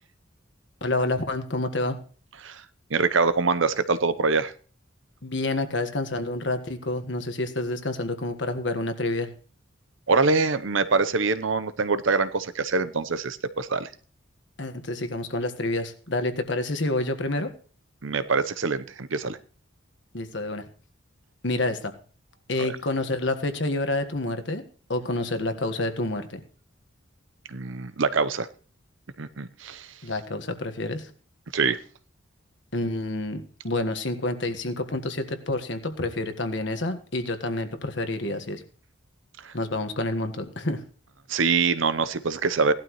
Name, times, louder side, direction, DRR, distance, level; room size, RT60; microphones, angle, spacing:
voice 1, 0.8-2.0 5.2-9.3 14.6-17.5 20.1-20.6 21.4-21.9 22.5-24.6 24.9-26.4 30.0-31.1 32.7-38.6 39.5-40.8, left 2 dB, 60° left, 8 dB, 1.5 m, -28 dB
voice 2, 2.9-4.5 10.1-13.9 18.0-19.4 22.6-22.8 27.5-28.5 29.2-29.9 31.5-31.8 39.4-39.5 41.3-42.7, right 4 dB, 75° right, 13 dB, 0.8 m, -24 dB
17.5 x 12.0 x 3.1 m, 0.41 s
head